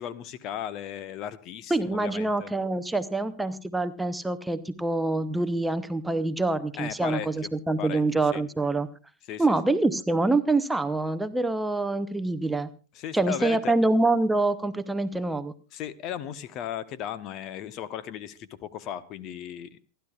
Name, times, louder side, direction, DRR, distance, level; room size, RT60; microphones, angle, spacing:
voice 1, 0.0-2.5 6.7-7.5 7.8-8.4 9.3-9.6 12.9-13.7 15.7-19.8, left 10 dB, 35° left, 16 dB, 0.9 m, -36 dB
voice 2, 1.7-8.9 9.4-12.7 13.1-15.5, right 2 dB, 5° right, 12 dB, 0.8 m, -25 dB
28.5 x 11.5 x 2.4 m, 0.34 s
figure-of-eight pair, 90°, 0 cm